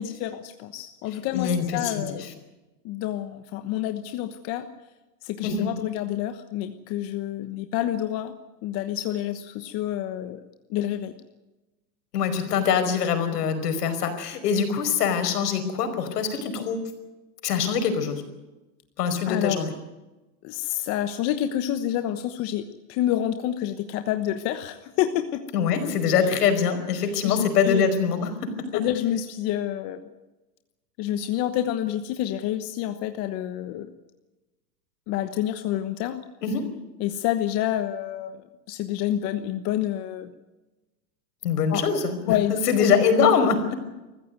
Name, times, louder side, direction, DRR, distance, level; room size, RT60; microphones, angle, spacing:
voice 1, 0.0-2.3 2.8-4.7 5.2-8.3 8.6-10.4 10.7-11.1 19.3-19.6 20.4-22.6 22.9-25.4 27.2-27.9 28.7-30.0 31.0-33.9 35.1-36.2 37.0-38.4 38.7-40.3 41.7-41.9 42.2-42.9, left 12 dB, 30° left, 8 dB, 1.1 m, -28 dB
voice 2, 1.3-2.3 5.4-5.7 12.1-16.9 17.4-18.2 19.0-19.7 25.5-28.5 36.4-36.7 41.4-42.2 42.5-43.8, left 6 dB, 70° left, 8 dB, 5.1 m, -23 dB
22.5 x 14.5 x 9.3 m, 1.1 s
supercardioid pair, 150°, 49 cm